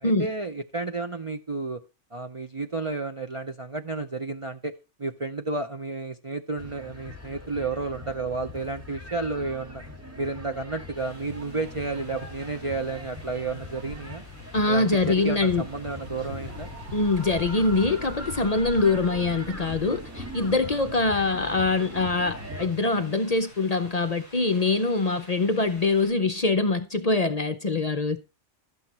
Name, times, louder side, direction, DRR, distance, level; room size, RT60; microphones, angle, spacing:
voice 1, 0.0-1.8 2.1-4.7 5.0-9.8 10.2-14.2 14.7-16.7, right 3 dB, 35° right, 0.6 m, -31 dB
sound 1, 6.6-22.7, left 2 dB, 10° right, 1.8 m, -41 dB
sound 2, 10.9-26.1, right 2 dB, 90° right, 7.1 m, -48 dB
voice 2, 14.5-15.7 16.9-28.2, left 3 dB, 40° left, 0.7 m, -24 dB
sound 3, 16.5-22.3 23.5-24.0 25.8-25.9, left 2 dB, 65° right, 4.7 m, -43 dB
12.0 x 7.9 x 4.2 m
omnidirectional pair, 1.2 m